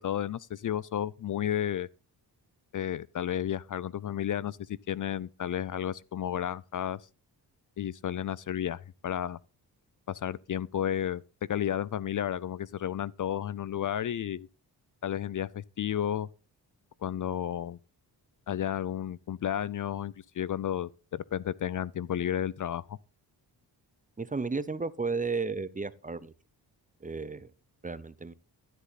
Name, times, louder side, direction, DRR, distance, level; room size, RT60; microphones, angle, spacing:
voice 1, 0.0-1.9 2.7-7.0 7.8-9.4 10.1-11.2 11.5-14.5 15.0-16.3 17.0-17.8 18.5-23.0, left 10 dB, 50° left, 0.5 m, -32 dB
voice 2, 24.2-26.3 27.0-27.5 27.8-28.3, right 4 dB, 20° right, 0.7 m, -33 dB
12.5 x 8.2 x 4.1 m
cardioid pair, 85°, 42 cm